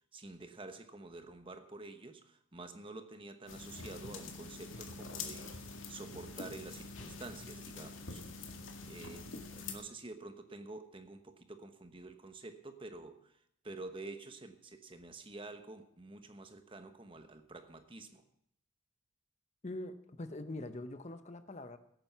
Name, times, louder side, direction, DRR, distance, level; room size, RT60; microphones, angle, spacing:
voice 1, 0.1-8.2 8.9-18.2, right 2 dB, 25° right, 8 dB, 1.1 m, -49 dB
sound 1, 3.5-9.8, left 4 dB, 90° left, 2.0 m, -45 dB
voice 2, 19.6-21.8, left 2 dB, 35° left, 10 dB, 0.7 m, -43 dB
17.0 x 9.1 x 5.6 m, 0.71 s
head